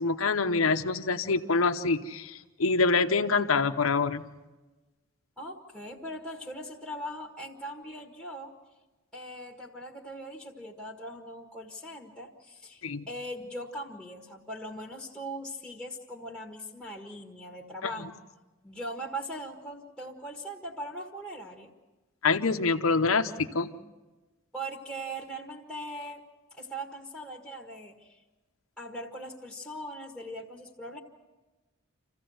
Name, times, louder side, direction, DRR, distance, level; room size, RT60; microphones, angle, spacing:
voice 1, 0.0-4.2 12.8-13.1 22.2-23.7, left 4 dB, 85° left, 6 dB, 0.9 m, -26 dB
voice 2, 5.4-8.5 9.1-18.1 18.6-21.7 24.5-26.2 26.6-28.2 28.8-31.0, right 1 dB, ahead, -2 dB, 1.8 m, -40 dB
27.5 x 15.0 x 7.9 m, 1.2 s
head